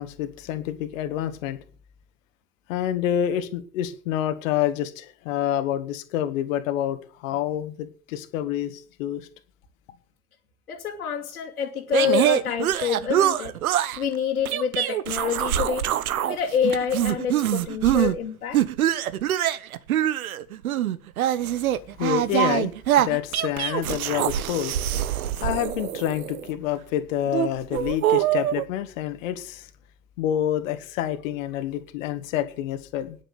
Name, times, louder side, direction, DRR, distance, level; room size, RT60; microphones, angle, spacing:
voice 1, 0.0-1.6 2.7-9.3 21.5-29.7 30.2-33.2, left 11 dB, 60° left, 10 dB, 1.8 m, -28 dB
voice 2, 10.7-15.9 16.3-18.6, left 8 dB, 80° left, -5 dB, 2.8 m, -27 dB
sound 1, 11.9-14.0 14.5-16.4 16.6-18.2 18.5-26.5 27.3-28.6, right 12 dB, 70° right, 1.1 m, -24 dB
10.0 x 9.9 x 8.0 m, 0.41 s
figure-of-eight pair, 80°, 44 cm